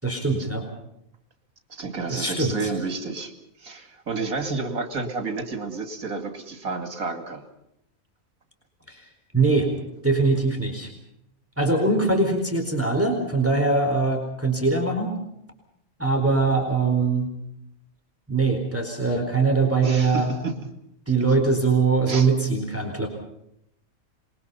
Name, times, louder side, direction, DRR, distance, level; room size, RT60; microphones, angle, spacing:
voice 1, 0.0-0.7 2.1-2.7 8.9-9.1 9.3-9.7 10.0-10.9 11.6-15.1 16.0-17.3 18.3-20.3 21.1-23.1, right 3 dB, 10° right, 3 dB, 4.3 m, -22 dB
voice 2, 1.7-3.3 3.6-7.4 19.8-20.6 22.1-22.3, right 4 dB, 80° right, 7 dB, 2.9 m, -30 dB
27.0 x 22.0 x 5.6 m, 0.78 s
omnidirectional pair, 1.5 m